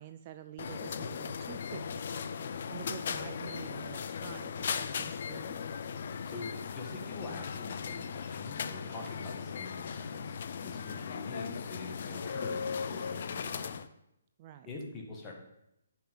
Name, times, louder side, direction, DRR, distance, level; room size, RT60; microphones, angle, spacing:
voice 1, 0.0-2.2 2.7-5.6 14.4-14.7, right 12 dB, 30° right, 10 dB, 0.3 m, -48 dB
sound 1, 0.6-13.9, left 6 dB, 50° left, 0.5 m, -38 dB
voice 2, 6.3-13.7 14.6-15.4, left 2 dB, 15° left, -2 dB, 1.8 m, -45 dB
9.8 x 5.8 x 5.5 m, 0.81 s
hypercardioid pair, 160°, 0 cm